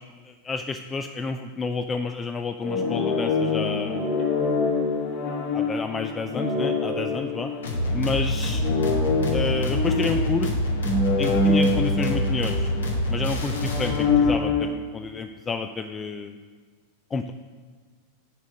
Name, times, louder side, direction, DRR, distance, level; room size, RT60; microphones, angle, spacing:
voice 1, 0.3-4.1 5.5-7.5 7.9-8.6 9.3-10.5 11.2-12.7 13.1-16.4 17.1-17.3, left 4 dB, 20° left, 7 dB, 0.3 m, -30 dB
sound 1, 2.6-8.1 8.5-13.1 13.5-14.7, left 3 dB, 45° left, 1.4 m, -25 dB
sound 2, 7.6-14.3, left 1 dB, 65° left, 1.1 m, -26 dB
7.3 x 4.9 x 6.4 m, 1.5 s
figure-of-eight pair, 90°, 0 cm